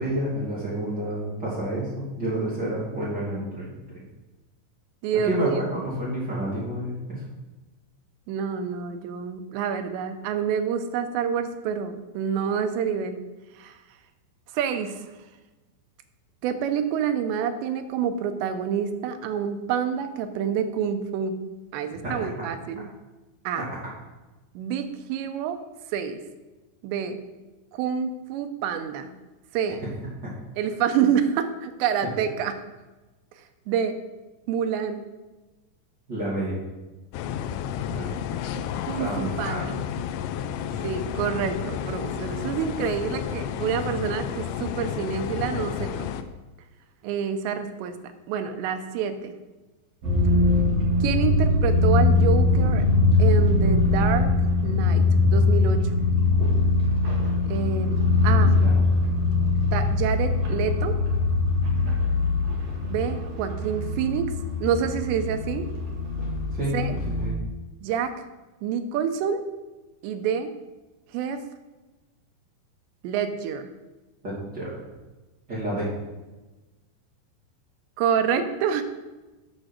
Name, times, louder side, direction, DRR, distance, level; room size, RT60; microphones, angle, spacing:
voice 1, 0.0-4.0 5.2-7.2 22.0-22.5 23.6-23.8 30.2-30.4 36.1-36.6 37.9-38.2 39.0-39.6 58.4-58.7 66.5-67.3 74.2-74.8 75.5-75.9, right 1 dB, 25° right, -9 dB, 2.7 m, -29 dB
voice 2, 5.0-5.7 8.3-13.2 13.6-13.8 14.5-15.0 16.4-21.4 21.7-22.9 23.4-23.7 24.6-25.6 25.9-26.2 26.8-27.2 27.7-29.1 29.5-29.8 30.6-32.5 33.7-34.0 34.5-35.0 38.9-39.7 40.8-46.1 47.0-47.9 48.3-49.3 51.0-52.8 53.2-54.3 54.6-55.9 57.5-58.0 58.2-58.5 59.6-60.9 62.9-64.2 64.6-65.7 66.7-66.9 67.8-68.1 68.6-69.4 70.0-70.5 71.1-71.4 73.0-73.7 78.0-78.8, right 7 dB, 85° right, 8 dB, 2.9 m, -27 dB
sound 1, 37.1-46.2, left 9 dB, 85° left, 2.3 m, -31 dB
sound 2, 50.0-67.3, left 3 dB, 50° right, 2.2 m, -22 dB
8.7 x 6.2 x 6.3 m, 1.1 s
omnidirectional pair, 5.2 m